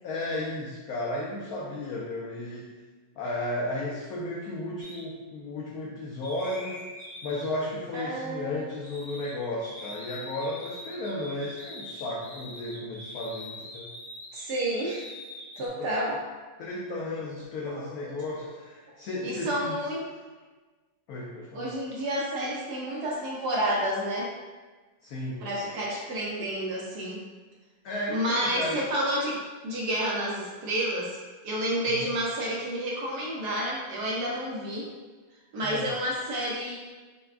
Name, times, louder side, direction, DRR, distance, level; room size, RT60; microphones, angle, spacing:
voice 1, 0.0-2.8 3.2-6.9 7.2-13.9 15.7-15.9 16.6-19.8 21.1-21.7 25.0-25.4 27.8-28.9 31.9-32.1 35.6-35.9, left 1 dB, 80° left, -3 dB, 0.8 m, -34 dB
sound 1, 4.8-5.0 6.2-9.3 9.6-15.7, left 1 dB, 50° left, 1.5 m, -44 dB
voice 2, 7.9-8.7 14.3-15.0 15.6-16.2 17.7-17.9 19.2-20.1 21.5-24.3 25.4-27.2 28.1-31.1 31.4-34.9 35.5-36.8, right 1 dB, 65° right, -4 dB, 1.2 m, -30 dB
6.5 x 2.3 x 2.4 m, 1.3 s
omnidirectional pair, 2.1 m